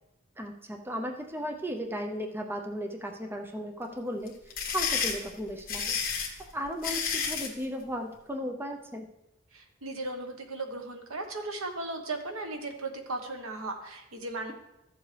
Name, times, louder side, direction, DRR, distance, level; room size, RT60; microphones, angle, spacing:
voice 1, 0.4-4.3 4.7-6.0 6.4-9.1, equal, 10° right, 3 dB, 0.7 m, -35 dB
sound 1, 4.3-7.6, left 6 dB, 45° left, 1.4 m, -31 dB
voice 2, 9.5-14.5, right 2 dB, 80° right, 5 dB, 1.2 m, -36 dB
14.0 x 7.1 x 3.3 m, 0.92 s
head